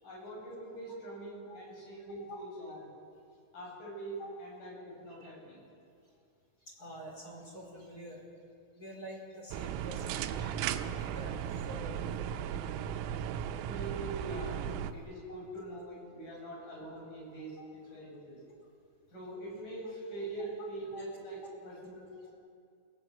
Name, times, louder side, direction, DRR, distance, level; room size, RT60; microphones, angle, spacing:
voice 1, 0.0-2.8 3.5-5.6 13.6-14.6 14.9-17.6 17.8-18.4 19.1-22.3, right 2 dB, 40° left, -3 dB, 9.2 m, -43 dB
voice 2, 6.8-8.2 8.7-11.3 11.7-12.3 14.4-14.5 15.3-15.4 17.6-17.7 19.8-19.9 20.9-21.0 22.1-22.2, equal, 20° left, -1 dB, 4.6 m, -47 dB
sound 1, 9.5-14.9, right 9 dB, 85° right, 3.5 m, -36 dB
28.5 x 17.5 x 8.0 m, 2.3 s
omnidirectional pair, 5.9 m